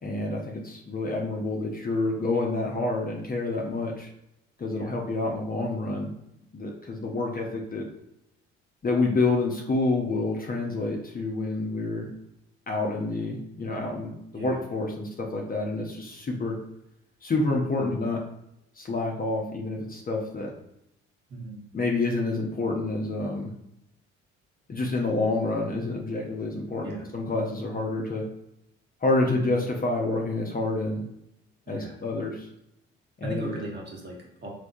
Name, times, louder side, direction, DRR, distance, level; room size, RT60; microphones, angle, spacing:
voice 1, 0.0-4.1 4.6-6.1 6.5-7.8 8.8-12.1 12.7-16.6 17.2-18.2 18.8-20.5 21.7-23.5 24.7-28.2 29.0-31.0 31.7-32.5 33.2-33.5, left 2 dB, 30° left, 0 dB, 0.7 m, -28 dB
voice 2, 21.3-21.6 26.8-27.1 29.2-29.5 31.7-32.0 33.2-34.5, right 2 dB, 35° right, -2 dB, 1.3 m, -37 dB
3.4 x 2.7 x 2.6 m, 0.81 s
hypercardioid pair, 55°, 29 cm